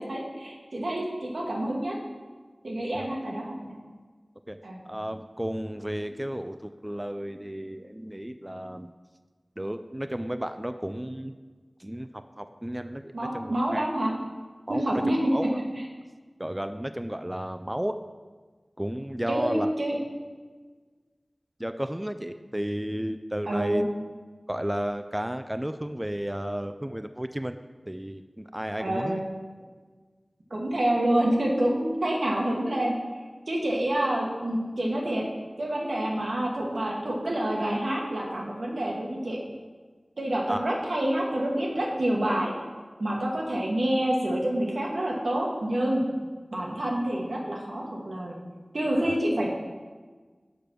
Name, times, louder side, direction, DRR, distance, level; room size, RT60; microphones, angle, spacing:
voice 1, 0.0-1.9 2.6-3.8 4.6-4.8 13.1-14.1 14.7-15.3 19.3-20.0 23.5-23.8 28.8-29.2 30.5-32.9 33.5-35.3 35.6-39.4 40.2-42.5 43.0-46.1 46.5-48.4 48.7-49.5, right 1 dB, 85° right, -2 dB, 1.4 m, -27 dB
voice 2, 4.9-8.9 9.6-11.3 11.8-12.1 12.4-13.9 14.7-15.0 15.3-15.6 16.4-18.0 18.8-19.7 21.6-23.9 24.5-27.6 27.9-29.2 40.5-40.7 49.0-49.2, equal, 15° right, 9 dB, 0.3 m, -33 dB
6.7 x 5.1 x 6.0 m, 1.4 s
wide cardioid pair, 45°, 0 cm